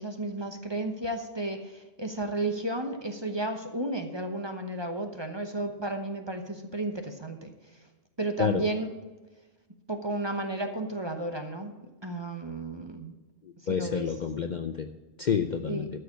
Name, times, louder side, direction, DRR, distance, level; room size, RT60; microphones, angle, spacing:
voice 1, 0.0-7.5 8.2-8.9 9.9-11.7 12.0-13.1 13.7-14.1 15.7-15.9, right 2 dB, 25° right, 5 dB, 0.9 m, -33 dB
voice 2, 13.4-14.9 15.2-15.9, left 6 dB, 50° left, 7 dB, 0.6 m, -29 dB
12.5 x 5.1 x 8.2 m, 1.2 s
omnidirectional pair, 1.2 m